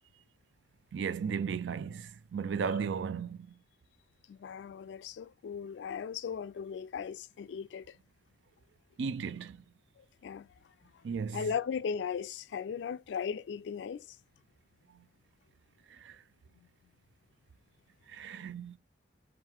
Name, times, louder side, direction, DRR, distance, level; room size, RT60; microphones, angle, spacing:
voice 1, 0.9-3.4 9.0-9.6 11.0-11.4 16.0-16.2 18.1-18.8, right 6 dB, 90° right, 0.4 m, -35 dB
voice 2, 4.3-8.0 10.0-10.5 10.9-11.0 11.3-14.2 16.5-16.7, left 7 dB, 75° left, 0.3 m, -37 dB
3.7 x 2.4 x 4.4 m
head